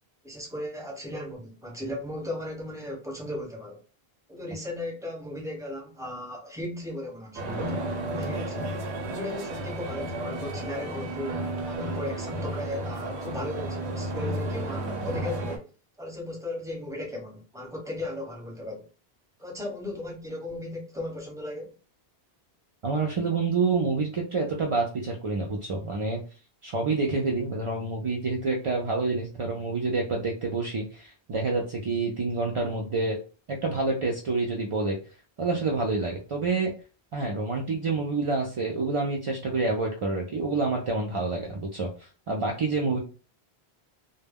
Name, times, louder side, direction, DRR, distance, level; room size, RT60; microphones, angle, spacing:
voice 1, 0.2-3.8 4.3-7.8 8.1-8.7 9.0-15.7 16.0-18.9 19.4-21.8, left 1 dB, 5° right, 0.8 m, -36 dB
sound 1, 7.3-15.6, right 1 dB, 85° right, 0.9 m, -32 dB
voice 2, 22.8-26.2 26.6-33.2 33.5-35.0 35.4-36.7 37.1-43.0, right 3 dB, 55° right, 0.3 m, -28 dB
2.1 x 2.1 x 3.4 m
omnidirectional pair, 1.1 m